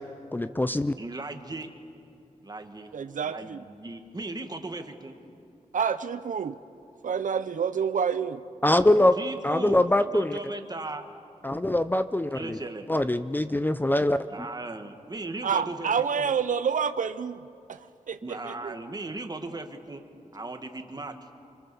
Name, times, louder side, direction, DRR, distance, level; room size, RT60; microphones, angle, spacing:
voice 1, 0.3-0.9 8.6-9.2 9.4-10.4 11.4-12.6 12.9-14.2, left 1 dB, 15° left, 11 dB, 0.5 m, -23 dB
voice 2, 1.0-1.7 2.4-2.9 3.2-5.1 9.1-11.1 12.3-12.9 14.3-16.3 18.2-20.0 20.3-21.1, right 2 dB, 30° right, 5 dB, 1.8 m, -37 dB
voice 3, 2.9-3.6 5.7-6.6 7.0-8.4 15.4-17.4 17.7-18.8, right 7 dB, 75° right, 12 dB, 0.6 m, -28 dB
26.0 x 25.0 x 7.0 m, 2.6 s
wide cardioid pair, 110°, 13 cm